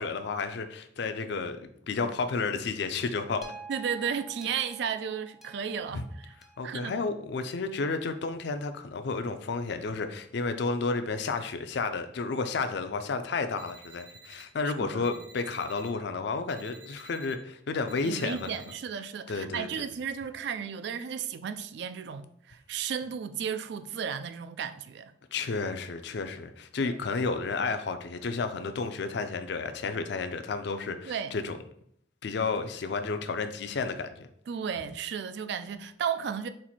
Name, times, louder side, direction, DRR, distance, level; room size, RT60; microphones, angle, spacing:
voice 1, 0.0-3.5 5.9-6.0 6.6-18.5 19.3-19.9 25.3-31.6 32.2-34.1, left 4 dB, 60° left, 0.4 m, -32 dB
sound 1, 3.4-7.7 8.4-8.5, right 4 dB, ahead, 0.5 m, -49 dB
voice 2, 3.7-6.3 6.6-7.0 14.6-15.1 18.0-25.1 26.8-27.0 31.1-31.3 34.5-36.5, right 7 dB, 65° right, 0.3 m, -34 dB
sound 2, 13.6-14.4 15.0-15.9 16.5-17.3 17.9-18.7, right 4 dB, 40° right, 0.9 m, -52 dB
4.4 x 2.5 x 4.1 m
head